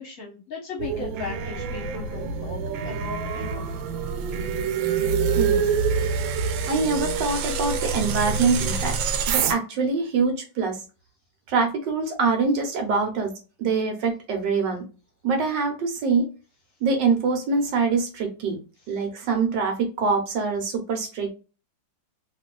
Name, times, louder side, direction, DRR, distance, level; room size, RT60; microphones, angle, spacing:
voice 1, 0.0-2.6 2.8-3.8, left 5 dB, 50° left, -1 dB, 1.1 m, -37 dB
sound 1, 0.8-9.5, right 5 dB, 90° right, 1.4 m, -26 dB
voice 2, 5.3-5.7 6.2-6.4 6.7-9.0 9.3-10.8 11.5-13.3 13.6-14.9 15.2-16.3 16.8-18.6 18.9-21.3, right 4 dB, 75° right, 3 dB, 1.5 m, -24 dB
3.3 x 3.0 x 2.2 m, 0.33 s
omnidirectional pair, 2.0 m